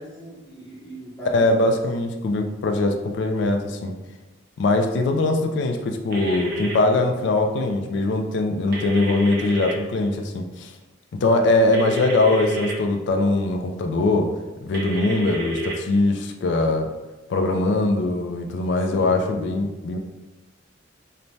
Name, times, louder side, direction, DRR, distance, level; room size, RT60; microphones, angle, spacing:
voice 1, 0.0-1.7 18.9-19.7, equal, 5° left, -12 dB, 0.6 m, -39 dB
voice 2, 1.3-4.0 4.6-10.7 11.2-14.4 14.6-16.9 17.3-20.0, left 2 dB, 65° left, 5 dB, 0.3 m, -21 dB
sound 1, 6.1-6.7 8.7-9.7 11.7-12.7 14.7-15.8, equal, 55° right, 0.6 m, -29 dB
3.1 x 2.1 x 2.6 m, 1.1 s
head